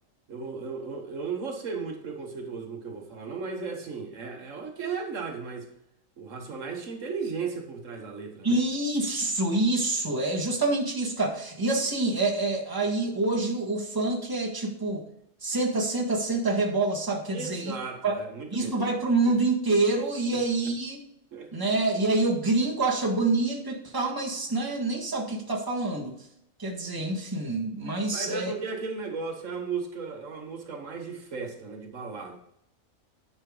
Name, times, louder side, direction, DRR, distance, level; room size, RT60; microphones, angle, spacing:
voice 1, 0.3-5.7 6.2-8.6 17.3-18.9 20.3-20.4 21.3-21.5 28.1-32.4, right 5 dB, 70° right, 3 dB, 1.5 m, -35 dB
voice 2, 8.4-15.0 15.4-17.7 18.0-18.2 18.5-21.0 21.5-26.2 26.6-28.5, right 2 dB, 15° right, -2 dB, 1.7 m, -26 dB
9.6 x 5.8 x 3.8 m, 0.77 s
omnidirectional pair, 1.4 m